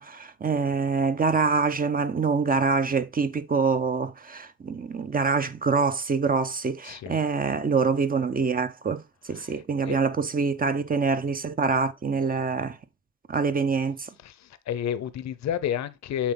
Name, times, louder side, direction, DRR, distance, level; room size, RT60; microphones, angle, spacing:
voice 1, 0.0-9.0 9.3-12.8 13.3-14.1, right 5 dB, 30° right, 0.8 m, -25 dB
voice 2, 6.8-7.2 9.4-9.5 9.9-10.0 14.2-16.3, left 9 dB, 65° left, 0.8 m, -30 dB
7.4 x 4.0 x 3.9 m
cardioid pair, 90°, 30 cm